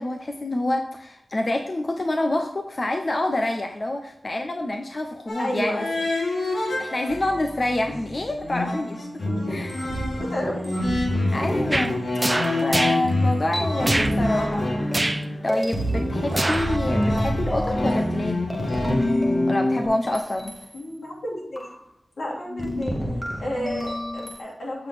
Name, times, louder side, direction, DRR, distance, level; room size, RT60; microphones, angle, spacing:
voice 1, 0.0-5.9 6.8-9.1 9.5-9.9 11.3-12.0 12.6-14.7 15.0-18.5 19.5-20.5, left 1 dB, 45° left, 4 dB, 0.7 m, -27 dB
sound 1, 5.3-7.5 7.9-19.9, left 2 dB, 70° left, 1.5 m, -28 dB
voice 2, 5.4-6.0 10.1-10.8 20.7-21.7 22.2-23.0 23.4-24.9, equal, 90° left, -3 dB, 2.8 m, -31 dB
sound 2, 7.1-8.4 9.2-13.2 13.5-21.0 21.6-21.8 22.5-24.4, equal, 10° left, 1.3 m, -28 dB
sound 3, 11.7-11.9 12.2-13.0 13.8-14.1 14.9-15.2 16.3-16.8 17.2-17.3, right 1 dB, 25° right, 0.4 m, -24 dB
7.9 x 5.7 x 3.5 m, 0.79 s
wide cardioid pair, 80°, 0 cm